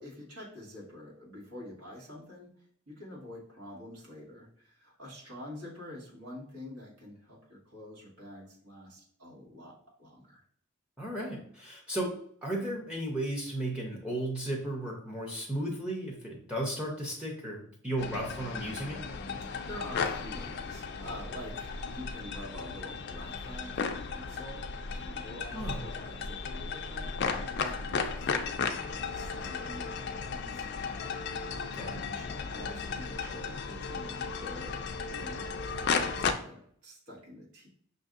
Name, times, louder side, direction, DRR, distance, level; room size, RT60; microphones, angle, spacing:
voice 1, 0.0-9.7 10.0-10.4 19.4-30.7 31.2-31.4 31.7-37.7, left 1 dB, 85° right, -4 dB, 1.6 m, -47 dB
voice 2, 11.0-12.1 12.4-19.0 25.5-25.8 31.6-32.1, right 1 dB, 5° right, -2 dB, 0.5 m, -35 dB
sound 1, 18.0-36.3, left 5 dB, 50° left, 0.3 m, -35 dB
5.9 x 2.6 x 2.5 m, 0.63 s
head